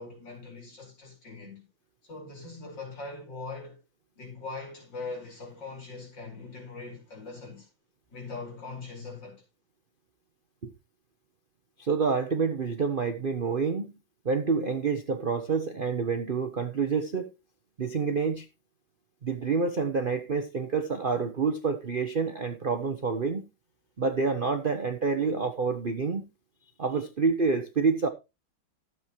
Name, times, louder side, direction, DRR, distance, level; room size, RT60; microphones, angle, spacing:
voice 1, 0.0-1.7 2.0-3.8 4.2-7.7 8.1-9.4, left 3 dB, 55° left, 5.7 m, -41 dB
voice 2, 11.8-13.9 14.2-17.3 17.8-18.5 19.2-23.4 24.0-26.2 26.8-28.1, right 5 dB, 70° right, 0.5 m, -28 dB
14.5 x 8.0 x 3.1 m
omnidirectional pair, 2.4 m